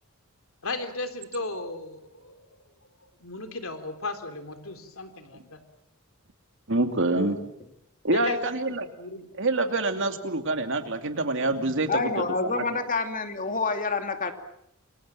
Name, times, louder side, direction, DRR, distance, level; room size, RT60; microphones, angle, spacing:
voice 1, 0.6-2.5 3.2-5.6 8.1-9.3, left 3 dB, 65° left, 7 dB, 3.6 m, -35 dB
voice 2, 6.7-7.4 8.0-8.9 9.4-12.1 12.6-12.7, right 2 dB, 60° right, 6 dB, 2.6 m, -26 dB
voice 3, 11.9-14.3, left 3 dB, 40° left, 6 dB, 2.7 m, -28 dB
28.5 x 24.5 x 7.6 m, 0.76 s
head